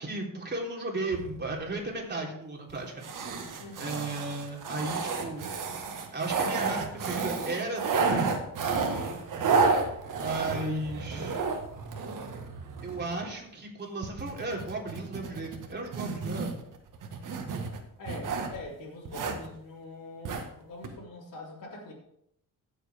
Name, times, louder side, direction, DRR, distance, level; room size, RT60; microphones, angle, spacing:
voice 1, 0.0-3.5 3.8-5.5 6.1-8.2 10.2-11.4 12.8-16.6, right 2 dB, 30° right, -1 dB, 3.6 m, -35 dB
sound 1, 1.1-1.8 2.7-2.8 3.0-13.3 14.0-18.6 19.0-19.5 20.2-20.5 20.8-20.9, right 4 dB, 65° right, 1.7 m, -31 dB
voice 2, 3.6-4.1 18.0-21.9, left 2 dB, 65° left, -6 dB, 3.7 m, -43 dB
16.0 x 7.6 x 3.6 m, 0.75 s
cardioid pair, 100°, 34 cm